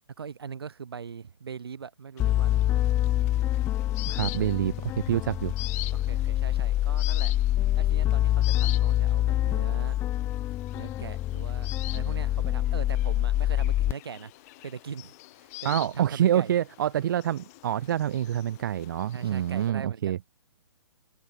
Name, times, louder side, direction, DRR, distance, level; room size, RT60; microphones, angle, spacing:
voice 1, 0.2-3.0 5.9-7.3 7.8-10.0 10.7-14.3 14.6-16.6 19.1-20.2, right 6 dB, 70° right, 5.3 m, -41 dB
sound 1, 2.2-19.7, left 22 dB, 35° left, 7.1 m, -44 dB
sound 2, 2.2-13.9, left 13 dB, 20° left, 0.8 m, -26 dB
voice 2, 4.1-5.5 15.6-20.2, right 11 dB, 50° right, 1.0 m, -27 dB
figure-of-eight pair, 130°, 13 cm